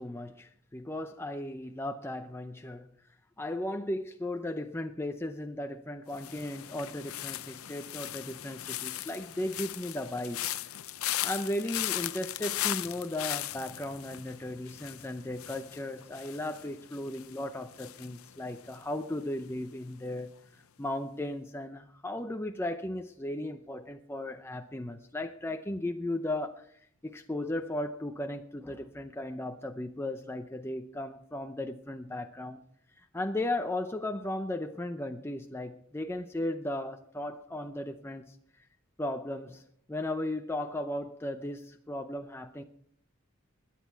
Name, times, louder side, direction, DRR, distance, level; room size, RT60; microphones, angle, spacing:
voice 1, 0.0-2.9 3.4-10.4 11.2-20.3 20.8-26.7 27.0-32.6 33.1-38.4 39.0-39.6 39.9-42.6, left 1 dB, 10° left, 0.6 m, -36 dB
sound 1, 6.1-19.2 19.4-19.9, left 14 dB, 70° left, 0.6 m, -38 dB
21.0 x 10.0 x 4.6 m
head